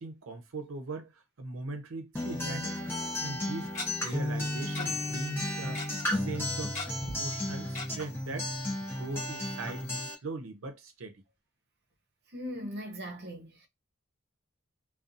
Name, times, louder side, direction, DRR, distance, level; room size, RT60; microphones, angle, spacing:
voice 1, 0.0-2.8 3.2-3.7 4.0-5.8 6.1-8.5 8.8-11.2, right 2 dB, 90° right, 0.6 m, -40 dB
Acoustic guitar, 2.1-10.1, left 1 dB, 10° left, 0.7 m, -33 dB
Tick-tock, 2.9-3.0 3.8-3.9 4.8-4.9 5.1-5.2 5.5-5.9 6.8-7.2 7.8-7.9 8.3-8.4 8.7-8.8, left 3 dB, 35° left, 1.1 m, -37 dB
voice 2, 12.3-13.7, equal, 55° right, 0.7 m, -39 dB
2.4 x 2.3 x 2.6 m
head